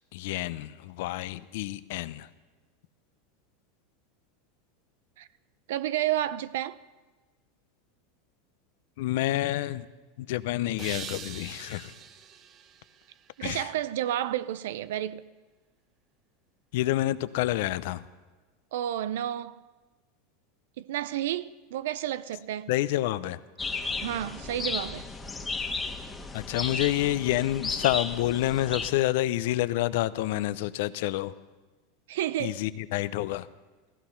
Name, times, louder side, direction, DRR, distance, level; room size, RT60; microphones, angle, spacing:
voice 1, 0.1-2.3 9.0-9.9 10.2-11.9 13.4-13.7 16.7-18.0 22.7-23.4 26.3-31.3 32.4-33.5, left 15 dB, 70° left, 0.6 m, -28 dB
voice 2, 5.7-6.8 13.4-15.3 18.7-19.6 20.8-22.7 24.0-25.1 32.1-32.6, right 12 dB, 80° right, 0.5 m, -31 dB
sound 1, 10.8-13.9, right 7 dB, 40° right, 1.0 m, -44 dB
sound 2, 23.6-28.9, left 4 dB, 15° left, 1.3 m, -34 dB
16.5 x 15.0 x 5.8 m
supercardioid pair, 120°, 0 cm